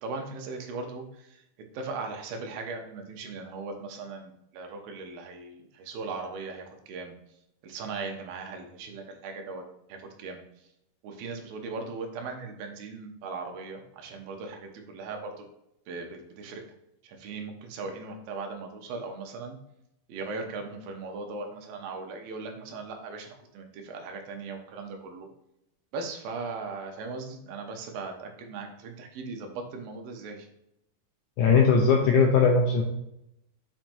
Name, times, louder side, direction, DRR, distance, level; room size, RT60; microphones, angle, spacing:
voice 1, 0.0-1.4 1.7-7.2 7.6-9.6 9.9-10.4 11.0-15.5 15.9-16.6 17.0-19.6 20.1-25.3 25.9-30.5, right 4 dB, 80° right, 3 dB, 2.7 m, -38 dB
voice 2, 31.4-32.8, left 5 dB, 80° left, 1 dB, 1.8 m, -20 dB
7.4 x 5.7 x 2.6 m, 0.80 s
omnidirectional pair, 4.2 m